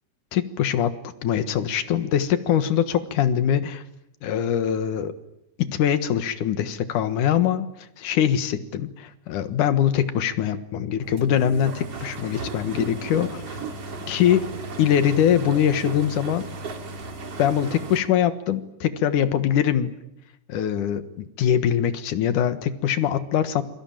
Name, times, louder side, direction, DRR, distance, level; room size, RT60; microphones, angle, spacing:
voice 1, 0.3-0.9 1.2-3.8 4.2-5.1 5.6-7.7 8.0-13.6 14.1-14.5 14.8-16.4 17.4-20.0 20.5-23.6, left 9 dB, 90° left, 12 dB, 3.0 m, -23 dB
sound 1, 11.0-18.0, right 3 dB, 55° right, 3.7 m, -35 dB
27.5 x 23.5 x 9.0 m, 0.81 s
omnidirectional pair, 3.5 m